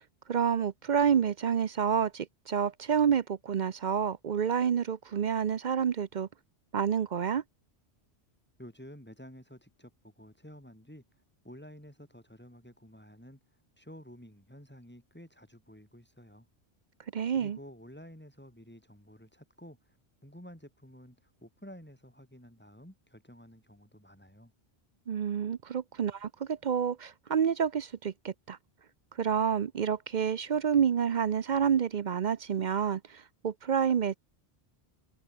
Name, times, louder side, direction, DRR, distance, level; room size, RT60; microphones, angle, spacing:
voice 1, 0.3-6.3 6.7-7.4 17.1-17.6 25.1-28.6 29.2-34.2, right 7 dB, 50° right, 0.7 m, -28 dB
voice 2, 8.6-16.5 17.3-20.0 20.2-24.5, equal, 10° left, 4.8 m, -51 dB
omnidirectional pair, 1.1 m